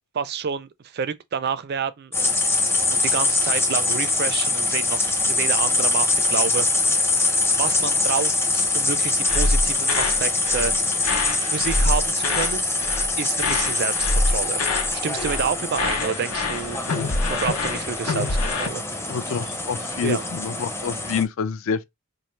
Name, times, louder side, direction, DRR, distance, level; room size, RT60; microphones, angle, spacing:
voice 1, 0.1-2.6 2.9-6.8 7.5-11.0 11.5-12.7 13.2-14.6 14.9-16.9 17.3-18.8 20.0-20.2, right 6 dB, 45° right, 0.4 m, -29 dB
sound 1, 2.1-21.2, left 3 dB, 10° left, 0.5 m, -24 dB
sound 2, 9.3-10.2 10.5-10.7 11.0-12.6 12.8-13.1 13.4-14.9 15.2-15.5 15.7-18.7, left 2 dB, 75° left, 0.9 m, -25 dB
voice 2, 19.1-21.8, left 6 dB, 60° left, 0.4 m, -27 dB
3.2 x 2.4 x 4.4 m
head